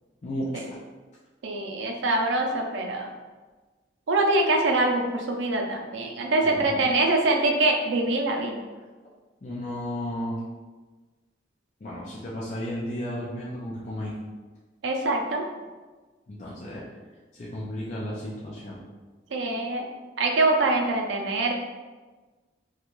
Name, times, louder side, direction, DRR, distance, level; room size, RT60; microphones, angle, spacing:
voice 1, 0.2-0.8 6.5-6.8 9.4-10.4 11.8-14.2 16.3-16.8 17.3-18.8, equal, 40° left, -6 dB, 0.4 m, -33 dB
voice 2, 1.4-3.1 4.1-8.6 14.8-15.4 19.3-19.8 20.2-21.5, right 2 dB, 85° right, 2 dB, 0.4 m, -24 dB
2.4 x 2.3 x 3.0 m, 1.3 s
head